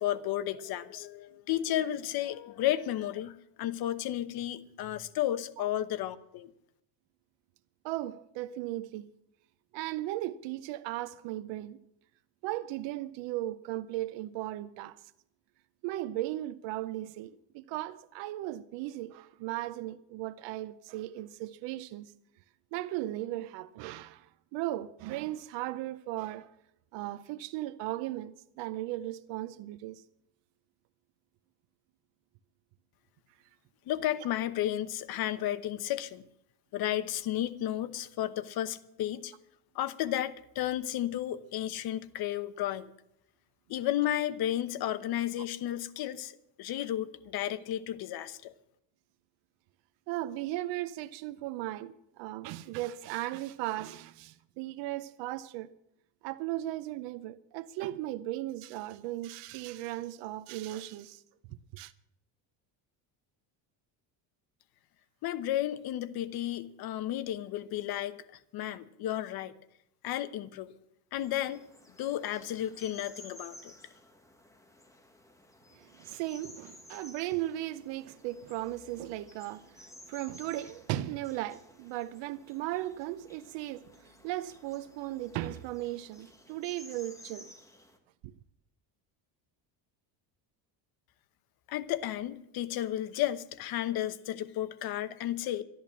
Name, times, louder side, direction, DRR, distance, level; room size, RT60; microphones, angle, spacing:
voice 1, 0.0-6.5 33.9-36.2 36.7-39.3 39.7-42.9 43.7-46.3 46.6-48.5 65.2-68.2 68.5-69.5 70.0-70.7 71.1-71.6 72.0-73.7 91.7-95.6, left 12 dB, 50° left, 1.0 m, -33 dB
voice 2, 7.8-9.1 9.7-11.8 12.4-15.0 15.8-22.1 22.7-26.5 26.9-30.0 50.1-55.7 56.2-61.2 61.7-61.9 75.7-87.5 88.2-88.3, right 15 dB, 70° right, 0.7 m, -37 dB
sound 1, 71.1-88.0, left 1 dB, 5° left, 1.4 m, -55 dB
12.5 x 11.0 x 7.4 m
cardioid pair, 145°, 46 cm